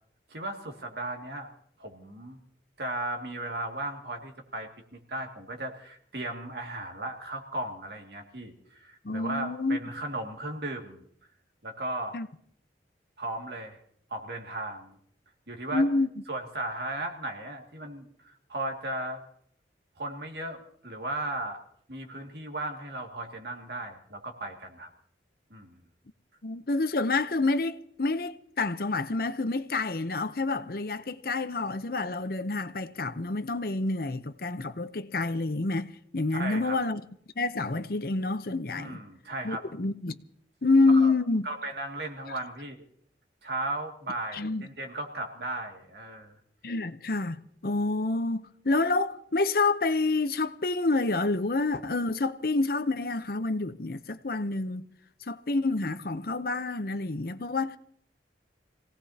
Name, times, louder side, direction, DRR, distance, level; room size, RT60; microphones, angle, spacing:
voice 1, 0.3-1.5 1.8-2.4 2.8-11.0 11.6-12.1 13.2-13.8 14.1-15.0 15.5-15.8 16.3-19.2 20.0-21.6 21.9-24.9 25.5-25.8 36.3-36.8 38.7-39.6 41.0-41.1 41.4-42.8 43.4-46.4, right 1 dB, 65° right, 2.3 m, -36 dB
voice 2, 9.0-9.8 12.1-12.3 15.7-16.1 26.4-37.0 37.4-39.0 39.4-40.2 40.6-41.5 42.3-42.4 44.3-44.7 46.6-54.8 55.3-57.8, left 3 dB, 55° left, 0.8 m, -28 dB
26.5 x 18.0 x 2.9 m
head